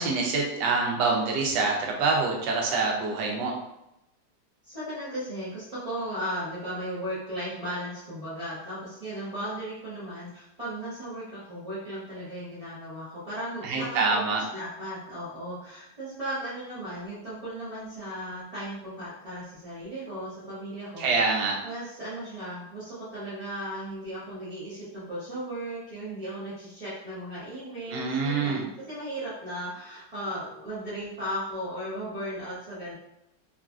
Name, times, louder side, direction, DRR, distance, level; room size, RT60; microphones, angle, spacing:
voice 1, 0.0-3.6 13.6-14.4 21.0-21.6 27.9-28.6, right 4 dB, 75° right, 0 dB, 1.2 m, -26 dB
voice 2, 4.6-14.2 14.5-21.3 21.6-32.9, equal, 40° right, -12 dB, 0.5 m, -36 dB
3.1 x 2.5 x 2.3 m, 0.86 s
omnidirectional pair, 2.0 m